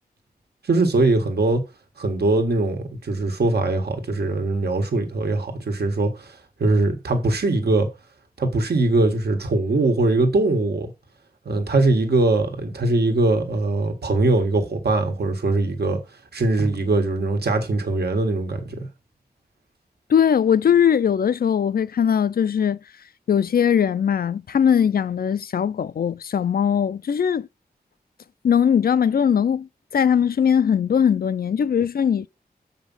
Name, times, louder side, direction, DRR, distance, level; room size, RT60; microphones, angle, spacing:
voice 1, 0.6-1.6 2.0-7.9 8.4-10.9 11.4-16.0 16.3-18.9, right 2 dB, 85° right, 1.5 m, -21 dB
voice 2, 20.1-22.8 23.3-27.5 28.4-32.3, left 8 dB, 70° left, 0.4 m, -20 dB
7.3 x 5.0 x 5.4 m
wide cardioid pair, 100°, 16 cm